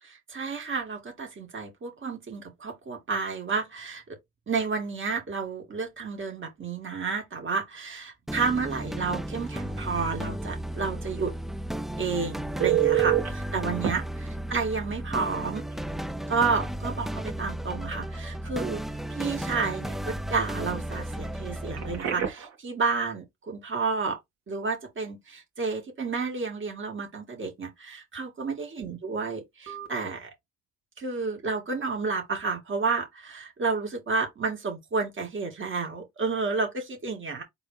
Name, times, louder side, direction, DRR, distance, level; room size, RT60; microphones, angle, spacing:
voice 1, 0.3-4.0 4.5-11.3 12.0-15.6 16.3-18.8 19.1-24.2 24.5-30.3 31.0-37.4, right 4 dB, 40° right, 2.3 m, -31 dB
sound 1, 8.3-22.0, right 1 dB, ahead, 0.4 m, -34 dB
Telephone, 12.6-13.3 13.8-13.9 15.7-15.8 16.2-16.4 21.7-22.5 29.7-29.9, right 11 dB, 55° right, 2.3 m, -26 dB
4.1 x 3.5 x 3.3 m
cardioid pair, 90°, 30 cm